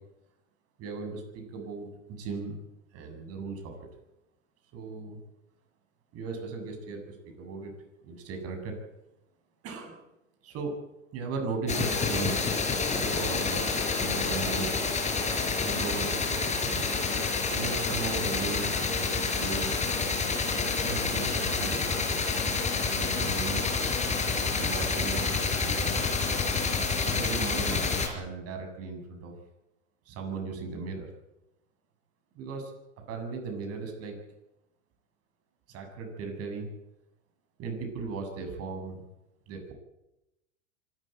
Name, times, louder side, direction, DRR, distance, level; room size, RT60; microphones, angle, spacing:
voice 1, 0.8-2.6 2.9-3.7 4.7-5.2 6.1-7.7 8.0-8.7 9.6-10.0 10.4-10.7 11.1-14.8 15.6-17.0 17.5-19.8 20.8-21.9 22.9-23.8 24.5-25.4 25.6-26.3 27.0-29.3 30.1-31.1 32.3-32.7 33.1-34.2 35.7-36.7 37.6-39.0 39.5-39.7, right 4 dB, 40° right, 4 dB, 7.4 m, -37 dB
sound 1, 11.7-28.1, left 4 dB, 20° left, 4.8 m, -28 dB
25.0 x 13.5 x 9.2 m, 0.94 s
hypercardioid pair, 110°, 36 cm